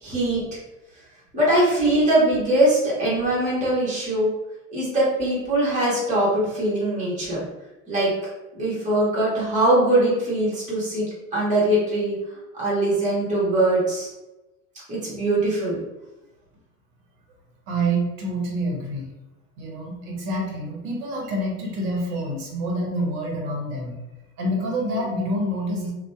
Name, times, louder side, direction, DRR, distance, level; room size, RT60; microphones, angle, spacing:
voice 1, 0.0-0.4 1.3-4.3 4.7-7.4 7.9-8.3 8.6-11.0 11.3-14.1 14.9-15.8, right 1 dB, 15° right, -7 dB, 1.0 m, -22 dB
voice 2, 17.7-19.1 19.6-24.0 24.4-25.9, right 1 dB, 45° right, -1 dB, 0.9 m, -27 dB
2.6 x 2.2 x 2.2 m, 1.0 s
figure-of-eight pair, 75°, 49 cm